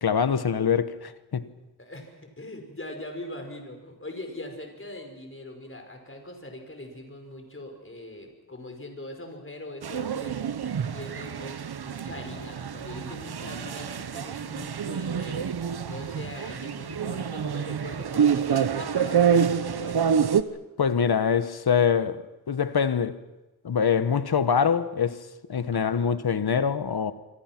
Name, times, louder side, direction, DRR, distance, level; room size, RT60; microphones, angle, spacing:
voice 1, 0.0-1.5 20.8-23.2 23.6-27.1, left 7 dB, 85° left, 1.3 m, -24 dB
voice 2, 1.8-10.4 10.9-15.5 15.8-20.1 25.7-26.2, left 1 dB, 35° left, 5.3 m, -41 dB
sound 1, 9.8-20.4, right 7 dB, 85° right, 1.1 m, -27 dB
26.5 x 25.0 x 6.1 m
wide cardioid pair, 100°, 37 cm